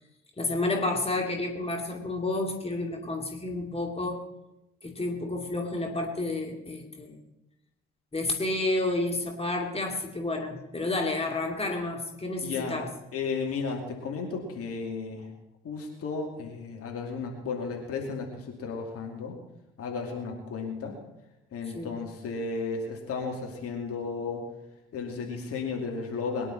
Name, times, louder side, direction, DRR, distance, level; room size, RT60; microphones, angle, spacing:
voice 1, 0.4-4.2 4.8-7.2 8.1-12.9 21.7-21.9, left 2 dB, 20° left, 1 dB, 2.6 m, -30 dB
voice 2, 12.4-12.9 13.1-15.3 15.6-19.4 19.8-21.0 21.5-24.4 24.9-26.5, left 4 dB, 50° left, 1 dB, 2.6 m, -34 dB
22.0 x 10.5 x 4.3 m, 0.91 s
figure-of-eight pair, 45°, 30 cm